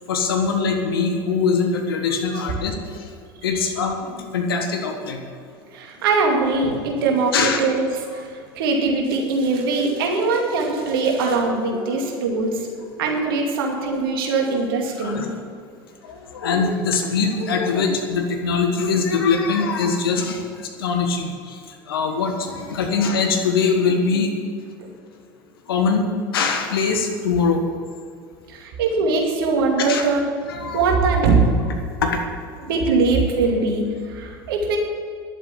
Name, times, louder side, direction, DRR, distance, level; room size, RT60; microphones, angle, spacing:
voice 1, 0.1-3.1 3.4-5.2 7.3-7.6 11.9-12.4 15.0-15.3 16.0-21.6 21.9-24.3 25.7-26.1 26.3-27.7 29.8-30.0 30.5-30.8 32.0-32.2, left 5 dB, 80° left, 4 dB, 1.5 m, -22 dB
voice 2, 5.7-15.3 24.8-24.9 28.5-31.4 32.6-34.8, right 3 dB, 75° right, 1 dB, 2.4 m, -22 dB
11.5 x 8.1 x 8.4 m, 2.2 s
hypercardioid pair, 75°, 12 cm